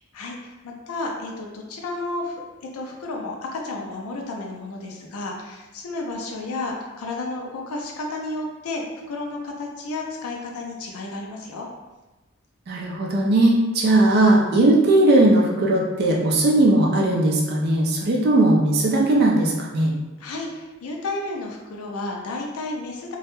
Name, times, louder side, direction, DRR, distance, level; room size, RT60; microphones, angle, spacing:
voice 1, 0.1-11.7 20.2-23.2, left 2 dB, 90° left, 0 dB, 0.4 m, -32 dB
voice 2, 12.7-19.9, right 2 dB, 50° right, -2 dB, 0.4 m, -18 dB
2.2 x 2.0 x 2.9 m, 1.1 s
head